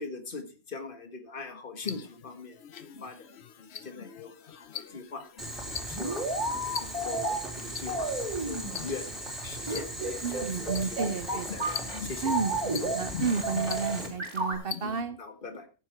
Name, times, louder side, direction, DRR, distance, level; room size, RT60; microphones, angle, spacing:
voice 1, 0.0-5.3 5.7-6.4 6.8-12.4 14.8-15.7, left 4 dB, 50° left, 6 dB, 1.8 m, -42 dB
sound 1, 1.8-15.0, left 7 dB, 75° left, 1.1 m, -43 dB
Boiling, 5.4-14.1, right 1 dB, ahead, 4.1 m, -38 dB
sound 2, 5.6-7.4 7.9-8.8 9.7-12.0 12.3-13.0 13.2-14.5, right 2 dB, 25° right, 2.5 m, -32 dB
voice 2, 10.2-11.5 12.2-12.5 12.8-15.2, right 5 dB, 60° right, 12 dB, 1.0 m, -31 dB
14.0 x 7.5 x 4.4 m, 0.34 s
omnidirectional pair, 1.1 m